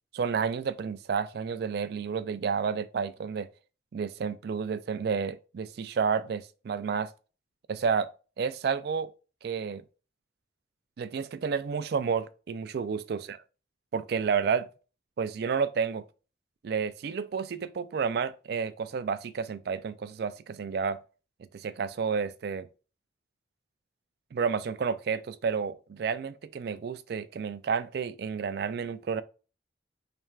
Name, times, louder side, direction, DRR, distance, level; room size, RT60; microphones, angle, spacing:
voice 1, 0.1-3.5 3.9-7.1 7.7-8.1 8.4-9.1 9.4-9.8 11.0-13.4 13.9-14.7 15.2-16.1 16.6-21.0 21.5-22.7 24.3-29.2, right 6 dB, 55° right, 0.3 m, -30 dB
3.3 x 2.4 x 4.3 m
head